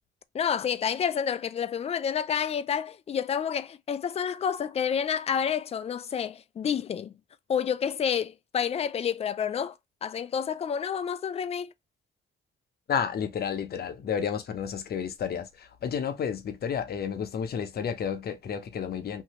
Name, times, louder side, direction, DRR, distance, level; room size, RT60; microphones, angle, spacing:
voice 1, 0.3-7.1 7.5-9.7 10.0-11.7, left 7 dB, 30° left, 0.4 m, -29 dB
voice 2, 12.9-19.2, left 7 dB, 50° left, 0.8 m, -31 dB
2.8 x 2.6 x 3.0 m
cardioid pair, 90°, 20 cm